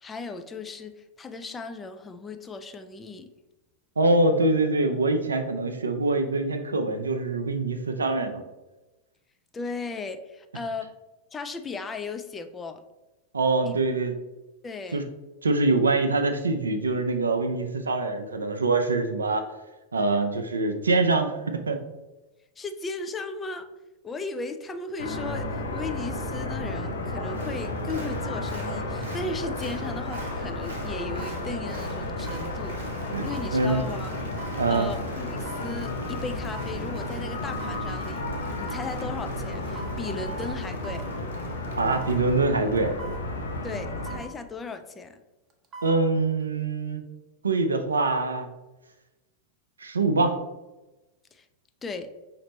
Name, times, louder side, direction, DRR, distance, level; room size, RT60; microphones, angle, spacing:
voice 1, 0.0-3.3 9.5-10.9 11.3-12.8 13.7-13.8 14.6-15.0 22.6-23.7 24.0-32.8 33.2-34.1 34.7-41.1 43.6-45.2 51.3-51.4 51.8-52.1, left 4 dB, 15° left, 8 dB, 0.3 m, -36 dB
voice 2, 4.0-8.4 13.3-14.1 14.9-15.0 15.4-19.5 19.9-21.8 33.1-33.9 34.6-34.9 41.8-43.0 45.8-47.0 47.4-48.5 49.8-50.4, right 3 dB, 75° right, 7 dB, 0.4 m, -24 dB
sound 1, 25.0-44.2, left 1 dB, 70° left, 0.6 m, -32 dB
Applause, 27.2-43.8 44.2-44.3, right 2 dB, 60° right, 1.0 m, -49 dB
sound 2, 29.0-29.1 30.1-30.4 31.2-31.4 32.3-32.5 33.3-33.6 34.4-34.6 35.5-35.7 36.5-36.8 37.6-37.9 38.7-38.9 39.8-40.0 40.8-41.1 41.9-42.2 43.0-43.3 44.1-44.3 45.5-46.0 46.4-46.5, right 3 dB, 30° right, 0.7 m, -42 dB
5.1 x 2.6 x 3.0 m, 1.1 s
figure-of-eight pair, 90°, 0 cm